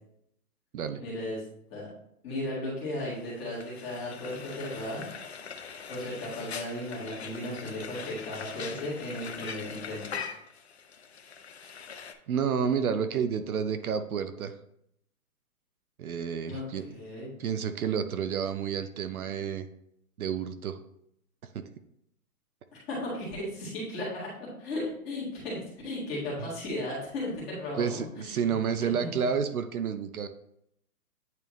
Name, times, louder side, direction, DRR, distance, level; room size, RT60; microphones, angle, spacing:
voice 1, 1.0-1.4 1.7-1.9 2.2-5.1 5.9-10.2 16.5-17.3 22.9-27.9 28.2-28.4 28.8-29.1, left 1 dB, 15° left, -7 dB, 1.8 m, -35 dB
Frying (food), 3.0-12.1, left 6 dB, 45° left, 0.5 m, -42 dB
voice 2, 12.3-14.5 16.0-16.9 17.4-19.7 20.2-20.8 21.5-21.7 26.4-26.5 27.8-30.3, right 7 dB, 70° right, 9 dB, 0.6 m, -30 dB
9.2 x 3.5 x 3.1 m, 0.74 s
hypercardioid pair, 170°, 46 cm